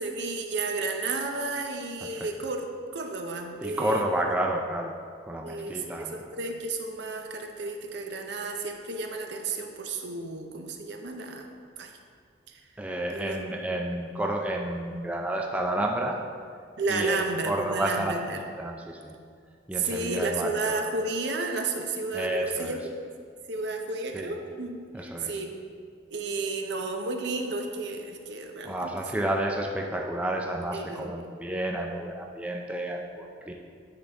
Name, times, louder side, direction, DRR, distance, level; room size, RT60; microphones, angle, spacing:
voice 1, 0.0-2.6 2.9-4.1 5.4-11.5 11.8-11.9 12.5-12.6 13.1-13.4 16.8-18.4 19.8-22.8 23.5-24.8 25.2-25.6 26.1-29.2 30.7-31.2, right 3 dB, 65° right, 4 dB, 0.6 m, -32 dB
voice 2, 3.6-4.9 5.2-6.3 12.8-16.2 16.9-17.2 17.5-18.2 18.6-19.1 19.7-20.8 22.1-22.8 24.1-24.4 24.9-25.4 28.6-33.5, right 1 dB, 5° right, 0 dB, 0.3 m, -30 dB
9.6 x 3.9 x 3.4 m, 2.1 s
head